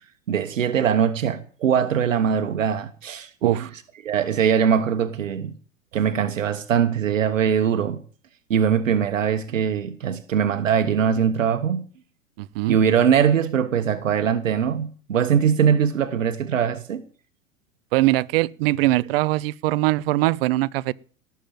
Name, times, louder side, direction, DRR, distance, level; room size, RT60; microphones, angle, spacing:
voice 1, 0.3-3.7 4.0-5.5 5.9-8.0 8.5-11.9 12.7-17.0, right 8 dB, 75° right, 1.3 m, -21 dB
voice 2, 12.4-12.8 17.9-20.9, right 18 dB, 50° right, 0.7 m, -21 dB
18.0 x 7.2 x 9.1 m
figure-of-eight pair, 100°, 39 cm